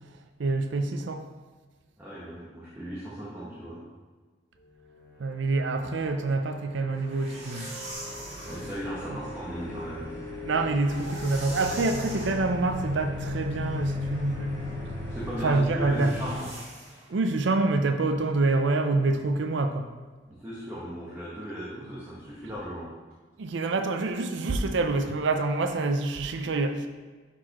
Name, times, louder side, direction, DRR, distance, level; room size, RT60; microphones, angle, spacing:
voice 1, 0.4-1.2 5.2-7.7 10.5-14.6 15.4-16.1 17.1-19.9 23.4-26.9, right 3 dB, 70° right, 7 dB, 0.5 m, -26 dB
voice 2, 2.0-3.8 8.4-10.1 15.1-16.5 20.3-22.9, equal, 10° right, -9 dB, 1.0 m, -37 dB
sound 1, 5.5-16.3, left 2 dB, 30° left, 1.9 m, -37 dB
sound 2, 6.9-8.8 10.6-12.4 15.8-17.1, right 1 dB, 35° right, 1.8 m, -42 dB
sound 3, 7.9-15.5, right 1 dB, 10° left, 1.1 m, -48 dB
10.5 x 4.2 x 3.0 m, 1.4 s
head